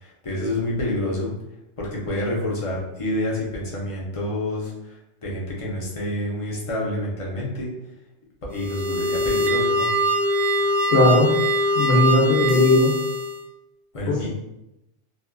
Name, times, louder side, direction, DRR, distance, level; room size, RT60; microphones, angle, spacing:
voice 1, 0.0-1.3 1.8-4.7 5.2-7.7 8.5-9.9 13.9-14.3, left 1 dB, 40° left, -4 dB, 0.5 m, -28 dB
sound 1, 8.5-13.4, equal, 60° right, 0.6 m, -22 dB
voice 2, 10.9-11.3 11.7-12.9 14.0-14.3, left 2 dB, 65° left, -2 dB, 0.9 m, -18 dB
2.8 x 2.4 x 2.2 m, 0.90 s
omnidirectional pair, 1.2 m